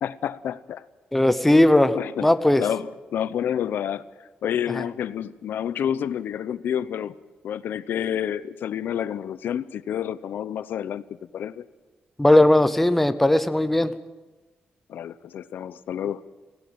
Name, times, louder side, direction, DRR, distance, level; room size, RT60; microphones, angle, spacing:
voice 1, 0.0-0.8 1.8-2.3 2.6-7.1 7.4-11.0 11.3-11.7 14.9-16.2, left 9 dB, 75° left, 16 dB, 0.7 m, -29 dB
voice 2, 1.1-1.9 2.2-2.6 12.2-13.9, left 1 dB, 5° left, 11 dB, 0.7 m, -17 dB
18.0 x 16.5 x 8.9 m, 1.2 s
wide cardioid pair, 180°, 3 cm